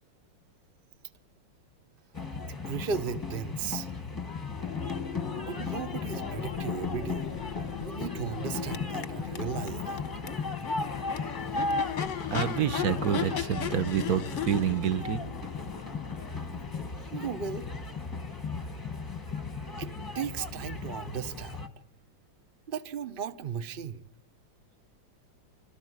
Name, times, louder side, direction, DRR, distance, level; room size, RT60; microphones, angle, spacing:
sound 1, 2.1-21.7, left 4 dB, 15° left, 0.9 m, -36 dB
voice 1, 2.4-3.9 5.4-7.2 7.8-10.0 17.1-17.7 19.8-21.6 22.7-24.0, right 7 dB, 90° right, 0.4 m, -36 dB
Crowd / Race car auto racing / Accelerating revving vroom, 4.4-18.3, left 8 dB, 50° left, 1.0 m, -38 dB
voice 2, 12.3-15.2, right 9 dB, 55° right, 1.3 m, -28 dB
27.0 x 13.0 x 9.6 m
omnidirectional pair, 2.4 m